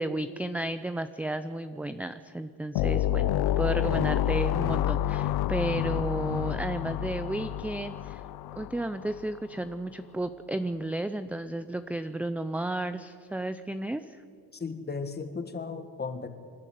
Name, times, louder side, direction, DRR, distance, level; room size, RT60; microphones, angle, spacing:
voice 1, 0.0-3.3 3.6-8.2 8.6-14.2, right 1 dB, 5° right, 11 dB, 0.5 m, -33 dB
sound 1, 2.8-9.2, left 12 dB, 70° left, 0.7 m, -29 dB
voice 2, 14.5-16.3, left 4 dB, 25° left, 8 dB, 1.7 m, -35 dB
27.0 x 12.0 x 9.3 m, 2.4 s
cardioid pair, 135°, 39 cm